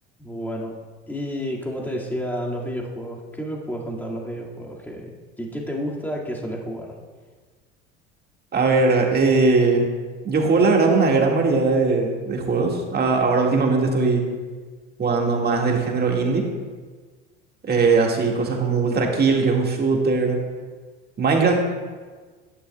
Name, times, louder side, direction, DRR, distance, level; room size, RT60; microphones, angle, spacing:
voice 1, 0.2-0.7 1.1-5.1 5.4-7.0, equal, 5° left, -3 dB, 2.1 m, -30 dB
voice 2, 8.5-9.9 10.2-14.3 15.0-16.5 17.6-20.4 21.2-21.6, right 4 dB, 25° right, 1 dB, 1.9 m, -20 dB
11.5 x 10.0 x 2.3 m, 1.4 s
hypercardioid pair, 75°, 35 cm